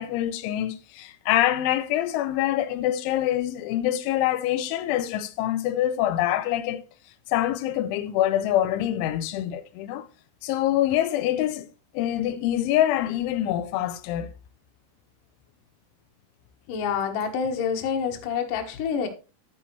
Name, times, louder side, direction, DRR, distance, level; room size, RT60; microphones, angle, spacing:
voice 1, 0.0-6.8 7.3-10.1 10.4-11.7 11.9-14.3, left 12 dB, 85° left, 3.1 m, -25 dB
voice 2, 16.7-19.1, left 6 dB, 60° left, 2.5 m, -27 dB
10.5 x 8.7 x 3.2 m
omnidirectional pair, 5.4 m